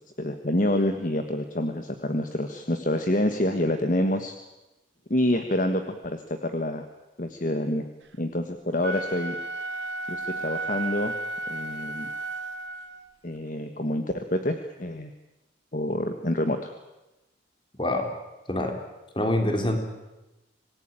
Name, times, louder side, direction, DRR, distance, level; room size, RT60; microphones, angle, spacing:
voice 1, 0.2-4.3 5.1-6.9 7.2-7.9 8.2-9.4 10.1-11.1 11.5-12.1 13.2-15.1 15.7-16.7, left 1 dB, 40° left, 7 dB, 1.5 m, -27 dB
Wind instrument woodwind instrument, 8.7-13.1, right 2 dB, 70° right, 1.9 m, -33 dB
voice 2, 17.8-18.1 18.5-18.8 19.2-19.8, left 1 dB, 25° left, 5 dB, 3.6 m, -25 dB
26.5 x 19.5 x 9.0 m, 1.0 s
head